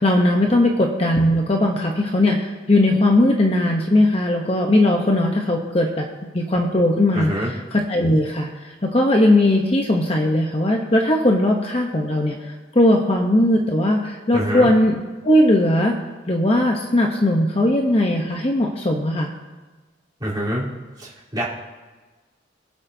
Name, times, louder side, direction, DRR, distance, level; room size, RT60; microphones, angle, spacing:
voice 1, 0.0-6.1 6.3-7.3 7.7-15.9 16.3-19.3, left 1 dB, 30° left, 1 dB, 0.9 m, -18 dB
voice 2, 7.1-7.5 14.3-14.7 20.2-20.7 21.0-21.4, equal, 20° right, -8 dB, 3.6 m, -25 dB
22.5 x 8.1 x 2.7 m, 1.3 s
head